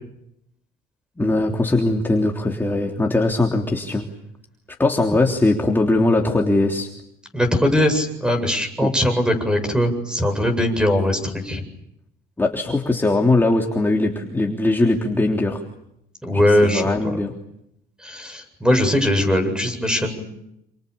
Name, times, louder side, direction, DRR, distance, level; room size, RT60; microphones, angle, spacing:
voice 1, 1.2-4.1 4.8-6.9 8.8-8.9 12.4-15.6 16.3-17.3, left 2 dB, 10° left, 1 dB, 3.4 m, -20 dB
voice 2, 7.3-11.6 16.2-17.2 18.0-20.2, left 1 dB, 5° right, 8 dB, 7.9 m, -20 dB
29.0 x 29.0 x 7.0 m, 0.80 s
cardioid pair, 110°, 17 cm